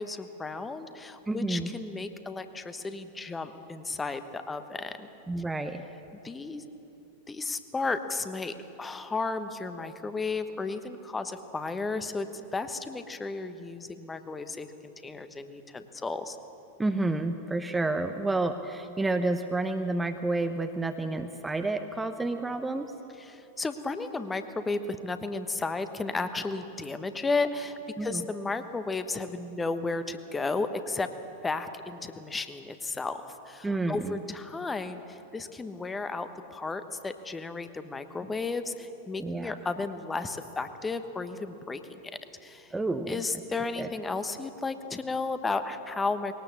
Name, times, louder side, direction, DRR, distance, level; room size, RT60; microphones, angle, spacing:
voice 1, 0.0-5.1 6.2-6.6 7.3-16.4 23.2-31.1 31.4-41.8 42.4-42.7 43.1-46.3, left 3 dB, 15° left, 10 dB, 1.1 m, -33 dB
voice 2, 1.3-1.7 5.3-5.8 16.8-22.9 28.0-28.2 33.6-34.2 39.2-39.5 42.7-43.2 43.8-43.9, right 2 dB, 10° right, 7 dB, 0.8 m, -30 dB
20.5 x 18.5 x 7.2 m, 3.0 s
figure-of-eight pair, 90°, 0 cm